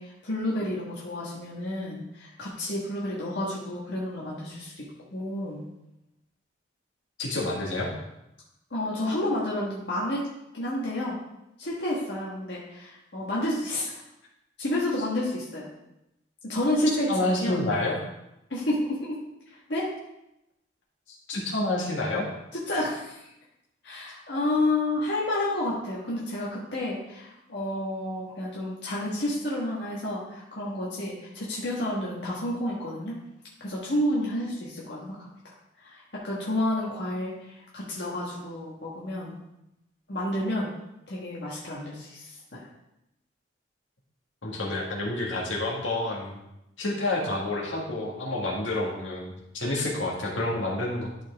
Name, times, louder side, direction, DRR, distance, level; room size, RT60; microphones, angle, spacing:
voice 1, 0.0-5.6 8.7-10.3 10.5-11.2 11.6-14.0 14.6-15.7 16.4-17.6 18.5-19.2 19.5-19.9 22.5-23.3 23.8-33.2 33.6-35.5 35.8-39.4 40.1-40.7 41.1-42.7, left 1 dB, 65° left, -6 dB, 1.4 m, -30 dB
voice 2, 7.2-7.9 17.1-18.0 21.3-22.3 44.4-46.4 46.8-51.1, left 2 dB, 85° left, -3 dB, 1.9 m, -28 dB
11.5 x 4.5 x 3.5 m, 0.87 s
head